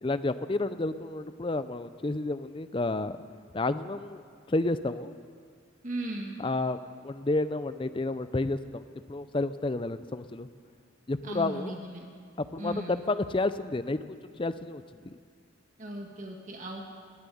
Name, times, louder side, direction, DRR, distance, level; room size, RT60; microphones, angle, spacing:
voice 1, 0.0-3.2 3.5-4.2 4.5-5.1 6.4-10.5 11.1-11.8 12.4-14.0 14.2-15.2, left 2 dB, 25° left, 12 dB, 0.5 m, -31 dB
voice 2, 5.8-6.4 11.2-12.1 12.6-13.0 15.8-16.8, right 1 dB, 40° right, 1 dB, 1.8 m, -37 dB
18.0 x 7.6 x 10.0 m, 2.1 s
head